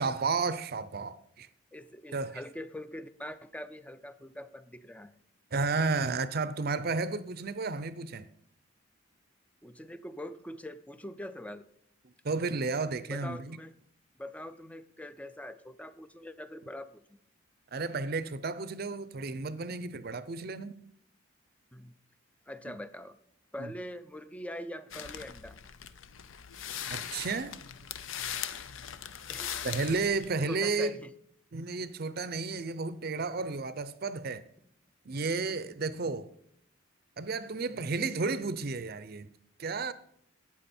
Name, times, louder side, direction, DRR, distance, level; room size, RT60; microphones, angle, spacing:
voice 1, 0.0-1.5 2.1-2.3 5.5-8.3 12.2-13.6 17.7-20.7 22.7-22.8 23.6-23.7 26.9-27.6 29.6-30.9 31.5-34.5 35.1-36.3 37.2-39.3 39.6-39.9, right 4 dB, 50° right, 0.5 m, -32 dB
voice 2, 1.7-5.2 9.6-11.6 13.1-13.7 14.2-17.0 21.7-21.9 22.5-23.2 23.5-25.6 29.3-29.7 30.4-31.1, left 1 dB, 5° left, 0.4 m, -43 dB
sound 1, 24.9-30.3, left 9 dB, 70° left, 0.6 m, -40 dB
13.5 x 8.7 x 4.3 m
head